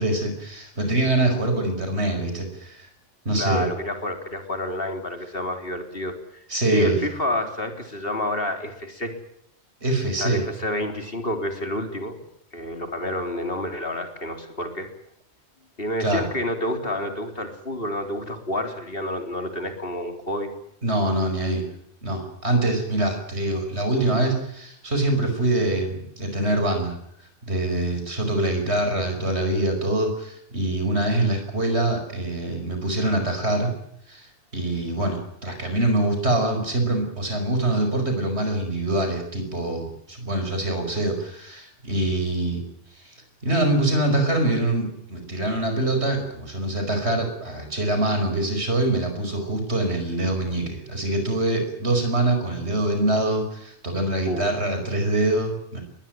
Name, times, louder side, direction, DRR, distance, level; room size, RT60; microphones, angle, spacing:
voice 1, 0.0-2.9 3.3-3.7 6.5-7.0 9.8-10.4 16.0-16.3 20.8-21.6 22.0-27.0 27.4-33.7 34.1-42.6 43.0-43.1 43.4-55.8, right 1 dB, 80° right, 5 dB, 5.7 m, -24 dB
voice 2, 3.4-6.4 6.7-9.2 10.2-12.2 12.5-14.9 15.8-20.5 54.2-54.5, left 1 dB, 60° left, 6 dB, 4.1 m, -29 dB
22.0 x 20.0 x 9.2 m, 0.73 s
omnidirectional pair, 1.1 m